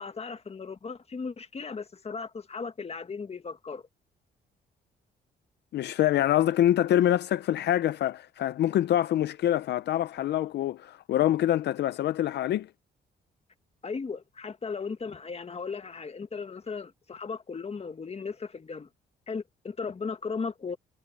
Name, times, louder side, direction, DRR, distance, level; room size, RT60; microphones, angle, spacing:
voice 1, 0.0-3.8 13.8-18.9 19.3-20.8, left 5 dB, 35° left, 1.8 m, -36 dB
voice 2, 5.7-12.7, left 12 dB, 70° left, 0.6 m, -25 dB
cardioid pair, 80°, 18 cm